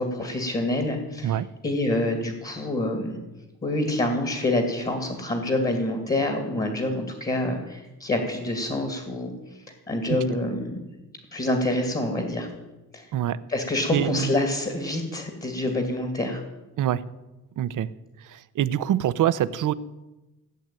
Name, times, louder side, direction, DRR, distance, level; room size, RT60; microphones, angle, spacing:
voice 1, 0.0-3.2 3.6-9.3 9.9-10.8 11.3-12.5 12.9-13.1 13.5-16.4, left 1 dB, 25° left, 5 dB, 2.5 m, -27 dB
voice 2, 13.9-14.3 16.8-17.0 17.6-17.9 18.3-19.7, right 11 dB, 55° right, 15 dB, 0.8 m, -24 dB
16.5 x 8.1 x 9.0 m, 1.0 s
cardioid pair, 125°, 37 cm